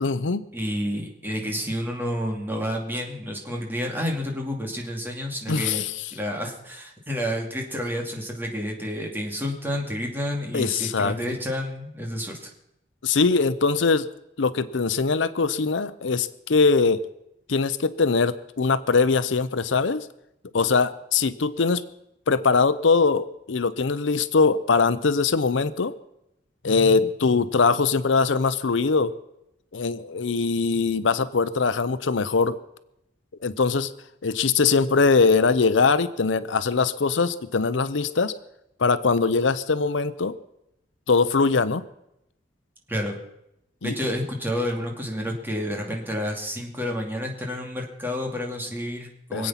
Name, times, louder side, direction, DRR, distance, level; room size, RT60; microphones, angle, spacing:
voice 1, 0.0-0.4 5.5-6.0 10.5-11.3 13.0-14.1 14.4-17.0 17.5-20.1 20.5-21.8 22.3-25.9 26.6-29.1 29.7-32.6 33.4-33.9 34.2-38.3 38.8-40.3 41.1-41.8 43.8-44.0 49.3-49.5, left 4 dB, 80° left, 14 dB, 0.7 m, -22 dB
voice 2, 0.5-5.8 6.1-12.5 42.9-43.2 43.8-49.5, equal, 10° right, 1 dB, 2.4 m, -30 dB
24.5 x 8.6 x 5.8 m, 0.84 s
head